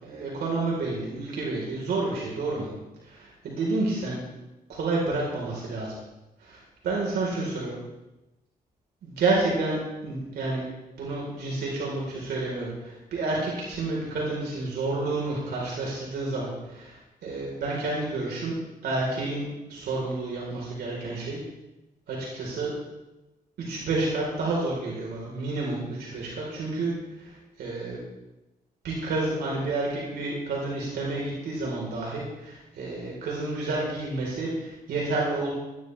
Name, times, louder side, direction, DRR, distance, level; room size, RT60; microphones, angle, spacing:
voice 1, 0.0-2.7 3.0-4.2 4.7-5.9 6.4-7.8 9.0-10.6 11.0-18.5 18.8-21.4 22.1-22.7 23.6-26.9 27.2-28.0 28.8-35.5, right 2 dB, 90° right, -3 dB, 4.1 m, -30 dB
20.0 x 13.0 x 3.4 m, 1.0 s
cardioid pair, 75°, 16 cm